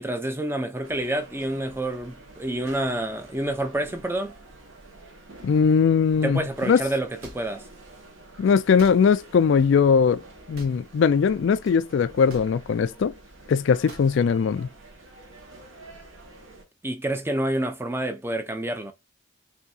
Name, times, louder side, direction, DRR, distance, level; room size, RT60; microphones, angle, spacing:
voice 1, 0.0-4.3 6.2-7.6 16.8-18.9, right 1 dB, 10° right, 0.4 m, -28 dB
sound 1, 0.8-16.6, right 2 dB, 75° right, 1.5 m, -48 dB
voice 2, 5.4-6.8 8.4-10.2 10.5-13.1 13.5-14.7, left 6 dB, 60° left, 0.3 m, -20 dB
sound 2, 7.2-7.4 8.8-9.0 10.5-10.8 12.3-12.5 13.9-14.1, right 1 dB, 90° right, 1.4 m, -42 dB
5.5 x 2.7 x 2.7 m
head